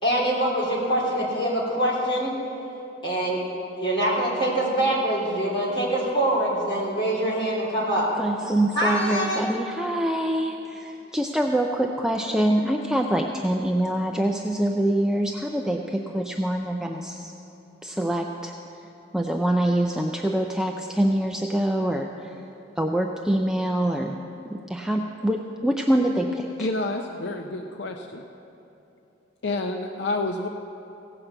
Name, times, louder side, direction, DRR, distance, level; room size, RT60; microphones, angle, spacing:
voice 1, 0.0-2.3 3.0-3.4 3.8-8.1 8.7-9.5, right 1 dB, 25° left, -6 dB, 3.2 m, -24 dB
voice 2, 8.2-17.3 17.8-18.5 19.1-22.1 22.8-24.2 24.5-26.7, right 1 dB, 5° right, 2 dB, 0.3 m, -25 dB
voice 3, 26.6-28.2 29.4-30.5, left 2 dB, 60° left, 5 dB, 0.5 m, -29 dB
16.5 x 5.9 x 7.8 m, 2.9 s
head